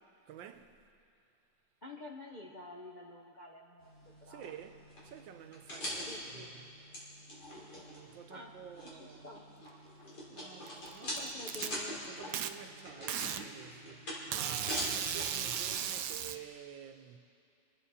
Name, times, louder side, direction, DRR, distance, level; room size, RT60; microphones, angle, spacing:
voice 1, 0.2-0.8 4.3-6.6 7.8-9.3 10.3-11.3 11.8-17.2, right 9 dB, 90° right, 1.5 m, -51 dB
voice 2, 1.8-3.9 4.2-4.5 6.0-6.5 8.3-8.5 8.9-9.5 11.0-12.0 15.8-16.0, left 2 dB, 40° left, 0.6 m, -49 dB
sound 1, 3.8-15.9, equal, 60° left, 3.9 m, -44 dB
Packing tape duct tape, 10.7-11.7 12.3-12.5 13.1-13.4 14.3-16.4, right 9 dB, 70° right, 1.1 m, -36 dB
26.0 x 9.1 x 4.2 m
omnidirectional pair, 2.0 m